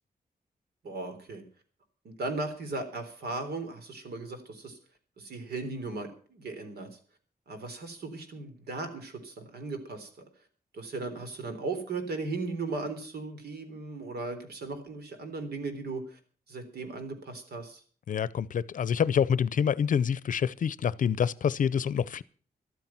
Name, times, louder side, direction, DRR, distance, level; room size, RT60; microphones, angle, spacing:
voice 1, 0.8-1.4 2.0-4.8 5.2-6.9 7.5-10.1 10.7-16.2 16.5-17.8, right 3 dB, 90° right, 3.7 m, -37 dB
voice 2, 18.1-22.2, left 7 dB, 55° left, 0.6 m, -27 dB
13.5 x 13.0 x 5.9 m
wide cardioid pair, 180°, 16 cm